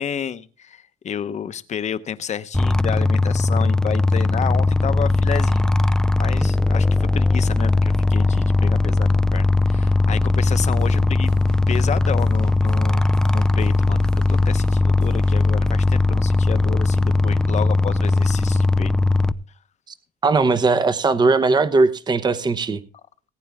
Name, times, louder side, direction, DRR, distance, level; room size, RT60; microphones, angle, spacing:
voice 1, 0.0-5.7 6.2-11.3 11.7-14.0 14.3-18.9, left 8 dB, 45° left, 0.9 m, -30 dB
sound 1, 2.5-19.3, left 2 dB, 5° left, 0.5 m, -19 dB
sound 2, 10.4-15.4, right 3 dB, 75° right, 6.8 m, -44 dB
voice 2, 20.2-22.8, right 3 dB, 25° right, 1.0 m, -18 dB
19.0 x 9.4 x 3.6 m
cardioid pair, 110°, 17 cm